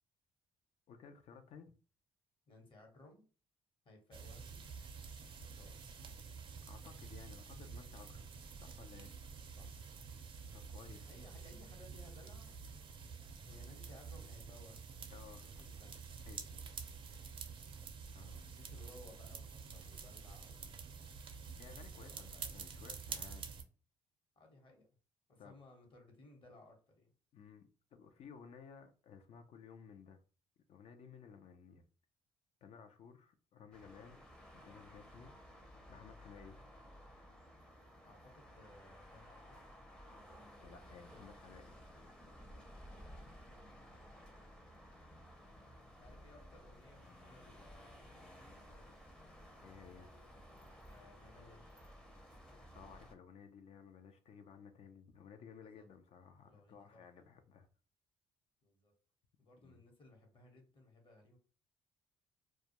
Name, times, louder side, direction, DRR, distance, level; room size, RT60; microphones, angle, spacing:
voice 1, 0.9-1.7 6.7-8.3 8.6-9.1 10.5-11.1 15.1-15.6 16.2-16.4 18.1-18.4 21.6-23.5 25.4-25.6 27.3-30.2 30.7-31.8 32.6-34.2 34.5-35.3 35.9-36.6 40.6-41.7 49.6-50.1 52.7-57.7 59.6-59.8, left 6 dB, 60° left, 0.4 m, -56 dB
voice 2, 2.5-3.3 3.8-4.6 5.4-5.8 9.5-9.8 11.1-12.6 13.4-14.8 15.4-16.0 18.5-20.7 21.9-22.7 24.4-24.9 25.3-27.1 38.0-39.6 45.9-48.9 50.8-52.0 55.5-55.8 56.4-57.2 58.6-58.9 59.4-61.4, left 2 dB, 45° left, 1.0 m, -61 dB
sound 1, 4.1-23.6, right 5 dB, 45° right, 0.5 m, -49 dB
sound 2, 33.7-53.1, equal, 5° left, 0.6 m, -56 dB
2.2 x 2.1 x 2.9 m
cardioid pair, 85°, 12 cm